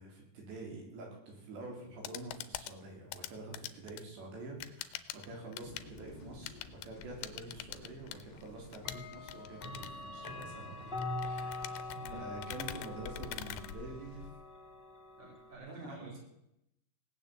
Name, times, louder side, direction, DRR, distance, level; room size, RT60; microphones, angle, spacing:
voice 1, 0.0-14.3 15.7-16.1, right 2 dB, 75° right, 0 dB, 5.8 m, -47 dB
sound 1, 1.8-14.4, left 13 dB, 80° left, 2.8 m, -46 dB
sound 2, 5.6-14.3, left 5 dB, 40° left, 1.7 m, -54 dB
Clock, 7.4-7.5 8.8-15.5, left 2 dB, 15° left, 2.5 m, -43 dB
voice 2, 11.9-12.4 15.2-16.2, right 3 dB, 50° right, -4 dB, 4.4 m, -50 dB
17.5 x 9.1 x 7.7 m, 0.83 s
omnidirectional pair, 5.0 m